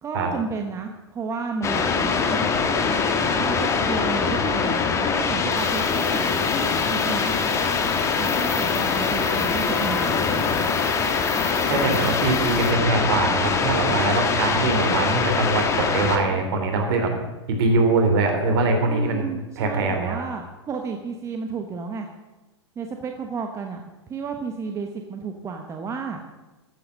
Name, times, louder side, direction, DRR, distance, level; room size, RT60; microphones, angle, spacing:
voice 1, 0.0-2.6 3.4-7.3 8.2-10.5 11.7-12.1 14.5-15.2 16.2-16.5 18.9-22.1 22.8-23.8 24.1-26.2, right 5 dB, 20° right, 4 dB, 1.1 m, -32 dB
sound 1, 1.6-16.2, left 5 dB, 20° left, 1.5 m, -23 dB
sound 2, 5.5-12.7, left 9 dB, 75° left, 1.6 m, -40 dB
voice 2, 11.7-17.1 17.6-19.3 19.6-20.2, right 3 dB, 55° right, 4 dB, 3.4 m, -22 dB
14.0 x 8.2 x 6.3 m, 1.1 s
hypercardioid pair, 120°, 15 cm